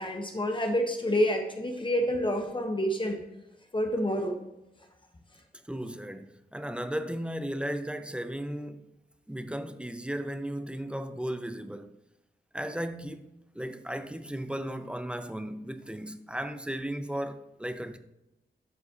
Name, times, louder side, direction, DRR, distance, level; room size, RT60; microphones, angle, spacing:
voice 1, 0.0-3.2 3.7-4.4, equal, 25° left, 1.1 m, -28 dB
voice 2, 5.7-8.9 9.3-11.9 12.5-13.3 13.5-18.0, right 1 dB, 5° right, 0.6 m, -35 dB
11.5 x 4.1 x 2.8 m
cardioid pair, 60°, 19 cm